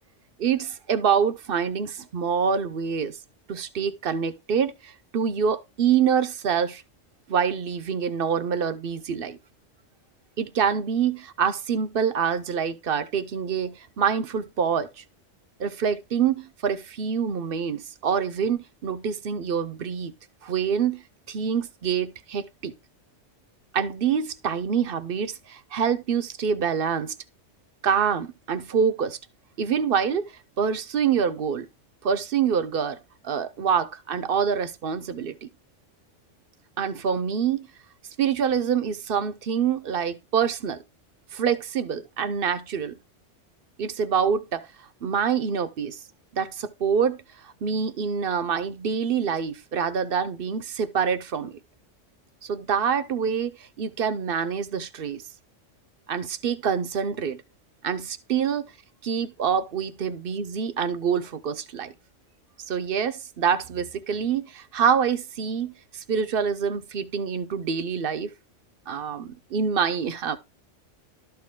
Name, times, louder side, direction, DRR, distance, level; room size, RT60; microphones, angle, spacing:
voice 1, 0.4-3.2 3.5-6.8 7.3-9.4 10.4-15.0 15.6-20.1 20.4-21.0 21.3-22.7 23.7-27.1 27.8-29.2 29.6-31.7 32.0-33.0 33.2-35.5 36.8-37.7 38.2-40.8 41.3-43.0 43.8-44.7 45.0-46.0 46.3-47.2 47.4-51.6 52.4-55.2 56.1-57.4 57.8-58.7 59.0-61.9 62.7-68.3 68.9-70.4, right 7 dB, 55° right, 0.9 m, -26 dB
12.5 x 4.4 x 3.6 m
omnidirectional pair, 1.3 m